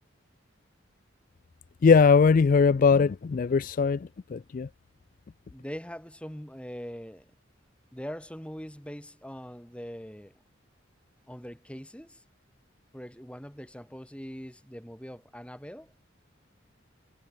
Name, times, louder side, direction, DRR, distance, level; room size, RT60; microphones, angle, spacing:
voice 1, 1.8-4.7, left 5 dB, 45° left, 0.3 m, -21 dB
voice 2, 5.5-7.3 7.9-10.3 11.3-12.2 12.9-15.9, equal, 5° left, 4.7 m, -42 dB
head